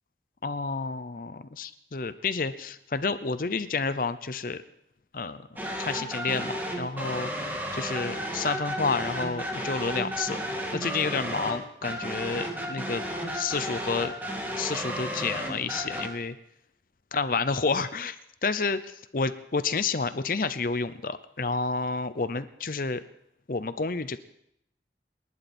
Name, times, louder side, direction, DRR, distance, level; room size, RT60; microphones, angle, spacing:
voice 1, 0.4-4.6 5.1-5.4 5.8-7.3 7.7-10.4 10.7-13.0 13.3-14.1 14.6-16.3 17.1-18.2 18.4-23.0 23.5-24.2, left 4 dB, 50° left, 12 dB, 0.7 m, -30 dB
sound 1, 5.6-16.1, equal, 10° right, 2.2 m, -33 dB
28.5 x 11.0 x 4.4 m, 0.76 s
head